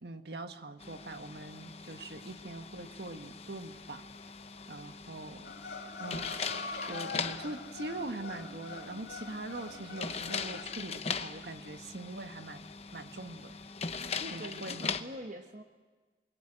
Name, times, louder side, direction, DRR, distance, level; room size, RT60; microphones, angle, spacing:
voice 1, 0.0-4.0 4.7-5.5 6.0-6.3 6.9-12.7 12.9-13.5 14.3-15.0, right 2 dB, 70° right, 8 dB, 1.4 m, -42 dB
sound 1, 0.8-15.0, left 5 dB, 35° left, 0.9 m, -41 dB
sound 2, 5.4-10.6, left 3 dB, 70° left, 2.6 m, -43 dB
voice 2, 14.0-15.6, equal, 45° right, 5 dB, 1.2 m, -44 dB
28.0 x 22.0 x 9.0 m, 1.4 s
head